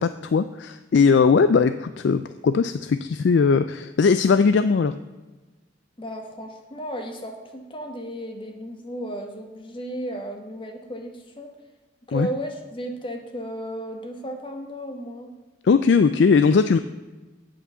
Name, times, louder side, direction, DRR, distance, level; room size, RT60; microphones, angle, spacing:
voice 1, 0.0-4.9 12.1-12.3 15.6-16.8, left 5 dB, 60° left, 12 dB, 0.3 m, -19 dB
voice 2, 6.0-11.5 12.1-15.3, right 1 dB, 25° left, 4 dB, 1.3 m, -34 dB
8.7 x 8.1 x 5.6 m, 1.2 s
head